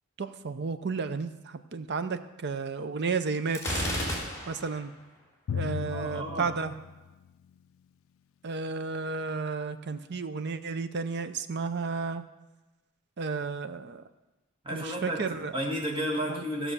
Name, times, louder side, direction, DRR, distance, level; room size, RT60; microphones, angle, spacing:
voice 1, 0.2-3.9 4.5-4.9 5.5-6.7 8.4-12.2 13.2-14.0 14.7-15.5 16.3-16.4, right 4 dB, 50° right, 11 dB, 0.6 m, -32 dB
Gunshot gunfire, 3.5-4.8, left 1 dB, 15° left, 3.1 m, -31 dB
Drum, 5.5-7.9, left 8 dB, 65° left, 0.3 m, -37 dB
voice 2, 5.9-6.5 14.6-16.7, equal, 25° right, 0 dB, 2.0 m, -32 dB
15.0 x 6.1 x 6.8 m, 1.1 s
head